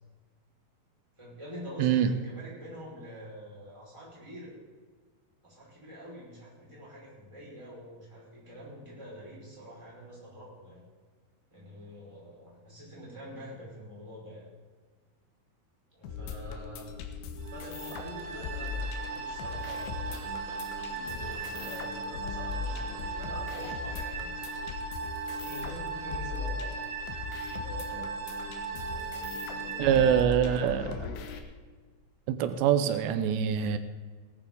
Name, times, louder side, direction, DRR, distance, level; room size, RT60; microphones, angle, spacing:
voice 1, 1.2-4.5 5.4-10.8 11.5-14.5 15.9-17.0 17.5-20.1 20.9-24.3 25.4-26.8 27.5-28.1 28.8-30.1, equal, 5° right, -6 dB, 4.6 m, -46 dB
voice 2, 1.8-2.1 29.8-31.1 32.3-33.8, right 9 dB, 90° right, 9 dB, 3.0 m, -25 dB
sound 1, 16.0-31.4, left 6 dB, 90° left, 3.3 m, -39 dB
sound 2, 17.4-30.2, right 5 dB, 60° right, 2.6 m, -38 dB
18.0 x 12.0 x 3.9 m, 1.5 s
omnidirectional pair, 4.9 m